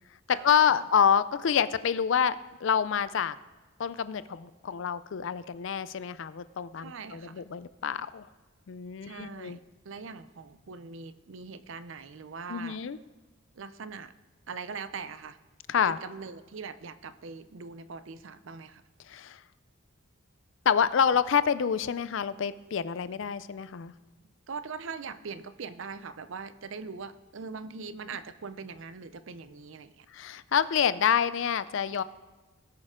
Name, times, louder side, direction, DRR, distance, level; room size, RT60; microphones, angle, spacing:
voice 1, 0.3-3.4 3.8-8.3 8.7-9.6 12.5-13.0 15.7-16.0 19.1-19.4 20.7-23.9 30.1-32.0, left 7 dB, 65° left, 16 dB, 0.4 m, -27 dB
voice 2, 6.8-7.4 9.0-9.6 9.8-12.8 13.5-14.1 14.5-15.4 15.9-18.8 24.5-30.1, right 5 dB, 70° right, 13 dB, 0.5 m, -41 dB
18.5 x 6.5 x 3.7 m, 1.3 s
head